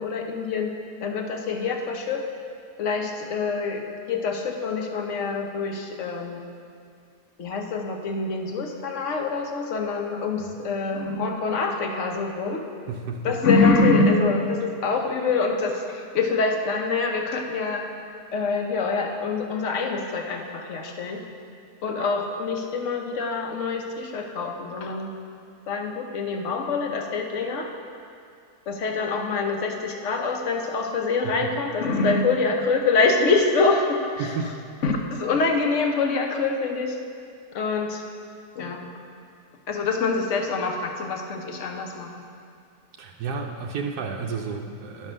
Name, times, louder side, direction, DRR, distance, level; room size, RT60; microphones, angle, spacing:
voice 1, 0.0-2.2 2.8-6.4 7.4-12.7 13.2-17.8 18.3-21.2 21.8-25.1 25.7-27.7 28.7-34.3 34.8-37.0 37.5-38.0 38.6-38.8 39.7-42.1, left 4 dB, 55° left, 3 dB, 1.1 m, -25 dB
voice 2, 12.9-13.4 31.2-31.6 34.2-34.6 43.0-45.1, right 5 dB, 85° right, 1 dB, 1.2 m, -32 dB
11.5 x 5.5 x 6.3 m, 2.3 s
omnidirectional pair, 1.7 m